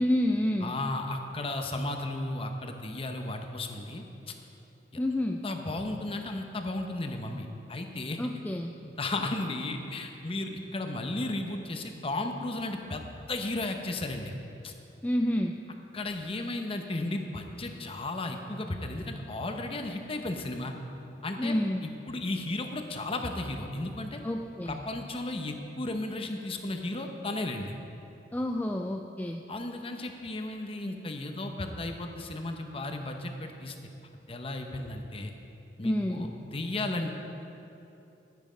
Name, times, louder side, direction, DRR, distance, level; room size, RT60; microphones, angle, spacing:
voice 1, 0.0-0.7 5.0-5.4 8.2-8.7 15.0-15.6 21.4-21.8 24.2-24.8 28.3-29.4 35.8-36.3, left 1 dB, 10° left, 3 dB, 0.3 m, -29 dB
voice 2, 0.6-4.3 5.4-8.2 8.8-14.3 14.6-14.7 15.9-20.7 21.2-21.5 21.8-24.2 24.6-27.7 29.5-33.8 34.3-35.3 35.8-37.2, left 2 dB, 30° left, 5 dB, 0.8 m, -34 dB
11.5 x 9.3 x 5.1 m, 2.9 s
head